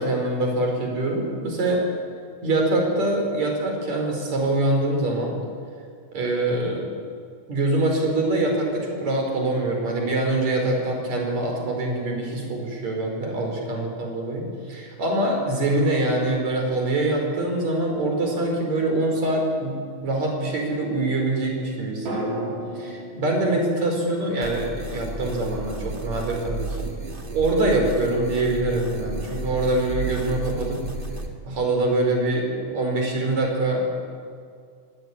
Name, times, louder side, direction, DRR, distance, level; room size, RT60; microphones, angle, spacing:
voice 1, 0.0-1.8 2.4-5.4 6.1-6.8 7.5-19.8 20.0-22.5 22.7-26.9 27.3-30.8 31.4-34.0, right 2 dB, 50° right, 1 dB, 6.3 m, -24 dB
sound 1, 22.1-26.0 26.3-26.4, right 1 dB, 90° right, 7.1 m, -37 dB
sound 2, 24.4-31.3, right 2 dB, 25° right, 1.3 m, -33 dB
24.5 x 17.5 x 9.9 m, 2.2 s
omnidirectional pair, 4.1 m